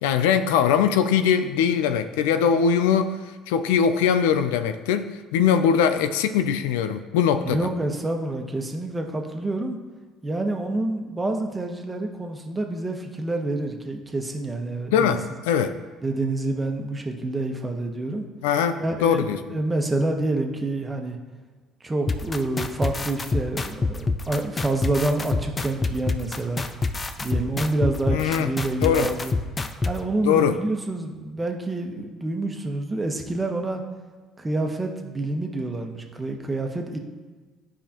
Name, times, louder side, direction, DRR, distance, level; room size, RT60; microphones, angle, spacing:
voice 1, 0.0-3.2 3.5-7.7 14.9-15.7 18.4-19.4 28.1-28.5 28.8-29.1 30.2-30.6, left 7 dB, 90° left, 10 dB, 0.4 m, -21 dB
voice 2, 7.4-9.8 10.2-15.2 16.0-18.2 18.8-21.2 21.8-26.6 27.2-29.3 29.8-33.8 34.4-37.0, right 2 dB, 20° right, 3 dB, 1.2 m, -28 dB
sound 1, 22.1-29.9, left 3 dB, 30° left, 0.6 m, -26 dB
12.0 x 5.0 x 3.0 m, 1.3 s
supercardioid pair, 75°, 0 cm